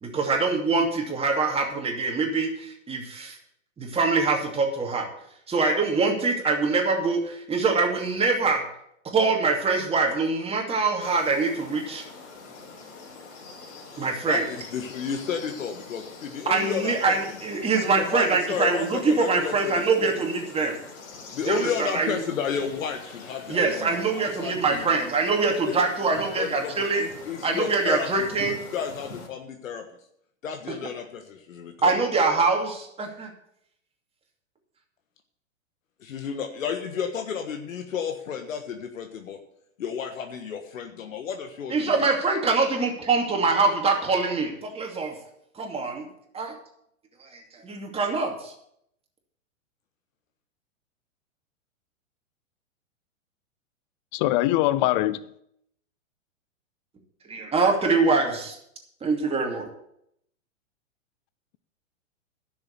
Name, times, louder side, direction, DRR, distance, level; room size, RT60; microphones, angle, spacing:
voice 1, 0.0-3.4 3.8-5.1 5.5-8.6 9.1-12.0 14.0-14.5 16.5-20.8 21.4-22.2 23.5-27.1 27.4-28.6 31.8-33.3 41.7-45.2 45.6-46.1 46.3-46.5 47.2-48.5 57.3-58.6 59.0-59.7, right 4 dB, 15° right, 2.6 m, -24 dB
sound 1, 11.0-29.3, left 4 dB, 60° left, 4.5 m, -44 dB
voice 2, 14.3-17.2 18.0-20.3 21.3-24.8 25.5-25.8 26.1-28.1 28.7-29.8 30.4-32.0 36.0-39.4 39.8-42.0, left 7 dB, 80° left, 1.6 m, -32 dB
voice 3, 54.1-55.3, left 16 dB, 40° left, 0.6 m, -22 dB
11.5 x 6.9 x 8.2 m
hypercardioid pair, 120°, 40 cm